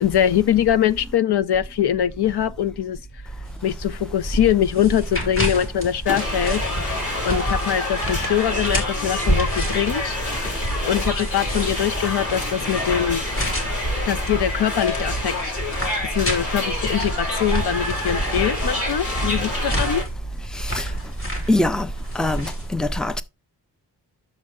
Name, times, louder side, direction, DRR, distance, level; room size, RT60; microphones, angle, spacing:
voice 1, 0.0-3.0 3.6-6.6 7.2-10.2 10.9-13.3 14.1-15.6 16.0-20.0, left 10 dB, 70° left, 0.6 m, -22 dB
sound 1, 3.4-22.7, equal, 30° left, 2.2 m, -30 dB
sound 2, 6.1-20.0, left 1 dB, 45° left, 5.1 m, -27 dB
voice 2, 20.5-20.9 21.5-21.9 22.2-23.2, left 1 dB, ahead, 0.3 m, -23 dB
7.4 x 6.5 x 3.6 m
wide cardioid pair, 160°, 42 cm